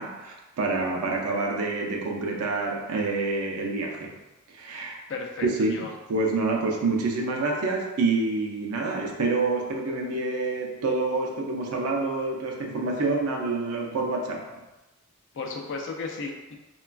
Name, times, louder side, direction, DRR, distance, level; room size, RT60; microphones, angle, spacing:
voice 1, 0.0-4.2 4.5-5.0 5.4-14.6, right 3 dB, 85° right, 1 dB, 0.5 m, -27 dB
voice 2, 5.1-5.9 15.3-16.6, left 4 dB, 55° left, 1 dB, 0.4 m, -34 dB
3.2 x 2.3 x 2.2 m, 1.1 s
head